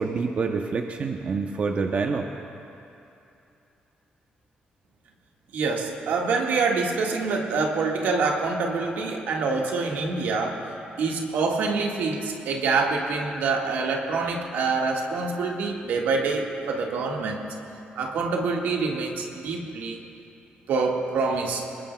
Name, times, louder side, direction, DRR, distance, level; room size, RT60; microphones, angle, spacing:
voice 1, 0.0-2.3, right 4 dB, 50° right, 3 dB, 0.8 m, -27 dB
voice 2, 5.5-10.6 11.0-17.5 18.0-20.0 20.7-21.7, right 4 dB, 85° right, 0 dB, 1.7 m, -26 dB
22.5 x 20.5 x 2.3 m, 2.8 s
cardioid pair, 100°, 3 cm